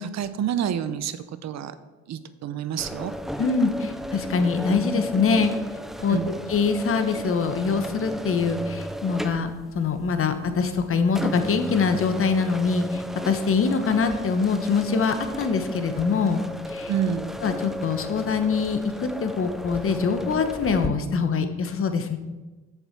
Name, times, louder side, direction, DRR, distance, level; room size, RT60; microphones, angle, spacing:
voice 1, 0.0-1.7 2.1-3.1 6.1-6.3 16.9-17.3, right 8 dB, 60° right, 13 dB, 0.7 m, -28 dB
sound 1, 2.8-20.9, equal, ahead, 0.5 m, -35 dB
voice 2, 3.4-5.5 6.0-6.2 6.5-16.4 16.7-16.9 17.4-22.2, left 5 dB, 45° left, 8 dB, 1.1 m, -24 dB
7.2 x 6.9 x 5.8 m, 1.2 s
cardioid pair, 90°, 30 cm